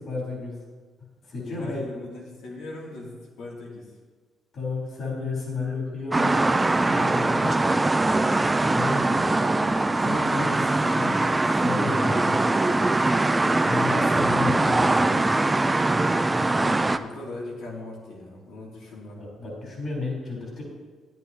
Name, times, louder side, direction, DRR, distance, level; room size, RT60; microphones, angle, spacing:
voice 1, 0.1-0.6 1.3-1.8 4.5-6.4 6.8-7.7 8.6-9.0 9.9-11.1 11.5-12.4 13.6-15.3 16.4-16.9 19.2-20.6, left 3 dB, 55° left, -4 dB, 3.4 m, -32 dB
voice 2, 1.4-3.9 8.6-9.4 13.1-13.4 17.0-19.2, left 2 dB, 85° left, -3 dB, 2.6 m, -40 dB
sound 1, 6.1-17.0, right 2 dB, 20° right, 0.5 m, -22 dB
13.5 x 10.0 x 2.8 m, 1.4 s
cardioid pair, 90°, 0 cm